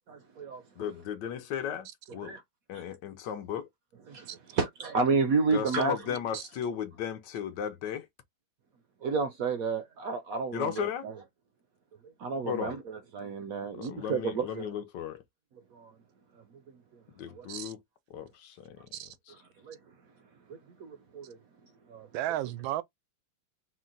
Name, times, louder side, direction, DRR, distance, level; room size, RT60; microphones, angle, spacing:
voice 1, 0.1-0.6 2.2-2.4 2.7-2.8 4.1-6.0 9.0-11.1 12.2-12.8 13.1-14.6 15.7-15.9 17.4-17.5 19.6-19.8 20.5-21.4 21.9-22.1, right 4 dB, 65° right, 0.9 m, -31 dB
voice 2, 0.8-2.4 2.7-3.7 5.5-8.1 10.5-11.0 12.4-12.7 13.7-15.2 17.2-17.8 18.1-18.9, left 9 dB, 70° left, 1.3 m, -35 dB
voice 3, 22.1-22.8, right 14 dB, 90° right, 1.4 m, -34 dB
4.4 x 2.1 x 3.8 m
omnidirectional pair, 2.1 m